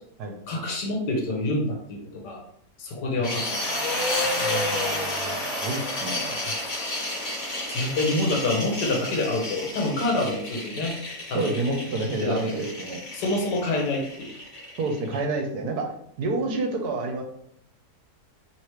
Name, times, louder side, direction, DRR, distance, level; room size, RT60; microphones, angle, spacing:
voice 1, 0.5-2.4 2.8-3.6 7.7-10.9 11.3-11.7 12.0-12.6 13.1-14.3, left 2 dB, 80° left, 1 dB, 1.6 m, -27 dB
sound 1, 3.2-15.2, left 1 dB, 55° left, 1.8 m, -31 dB
voice 2, 4.2-6.4 11.3-13.0 14.8-17.2, right 3 dB, 70° right, 3 dB, 1.2 m, -29 dB
4.8 x 3.5 x 3.1 m, 0.69 s
omnidirectional pair, 1.8 m